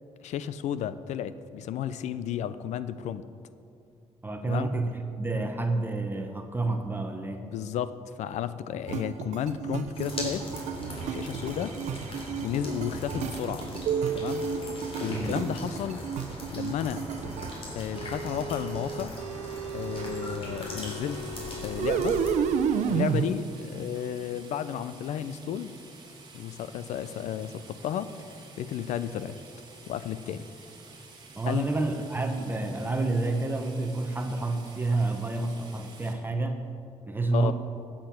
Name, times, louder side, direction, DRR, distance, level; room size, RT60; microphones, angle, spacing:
voice 1, 0.2-3.3 4.4-4.7 7.5-10.5 11.1-11.7 12.4-13.7 14.1-14.5 15.0-16.0 16.5-17.0 17.7-19.1 19.7-21.2 21.6-22.2 22.9-25.7 26.3-28.1 28.6-29.4 29.9-30.5 31.5-31.7 37.3-37.5, left 9 dB, 90° left, 14 dB, 0.6 m, -32 dB
voice 2, 4.2-7.5 15.1-15.4 31.3-36.7 37.1-37.5, right 2 dB, 15° right, 5 dB, 0.9 m, -29 dB
sound 1, 8.9-17.5 18.0-23.3, right 7 dB, 90° right, 0.7 m, -32 dB
sound 2, 9.9-22.3, left 1 dB, 55° left, 3.8 m, -39 dB
sound 3, 20.8-36.1, right 3 dB, 35° right, 2.2 m, -50 dB
15.5 x 8.8 x 5.9 m, 2.5 s
cardioid pair, 120°, 12 cm